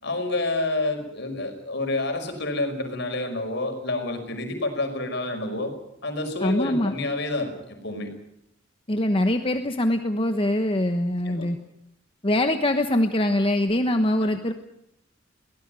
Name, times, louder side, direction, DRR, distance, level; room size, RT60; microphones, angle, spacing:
voice 1, 0.0-5.7 6.0-8.1 11.3-11.5 14.2-14.3, left 2 dB, 65° left, 5 dB, 5.4 m, -28 dB
voice 2, 6.4-7.0 8.9-11.6 12.2-14.5, left 1 dB, 30° left, 7 dB, 1.2 m, -23 dB
22.5 x 17.5 x 9.1 m, 0.79 s
head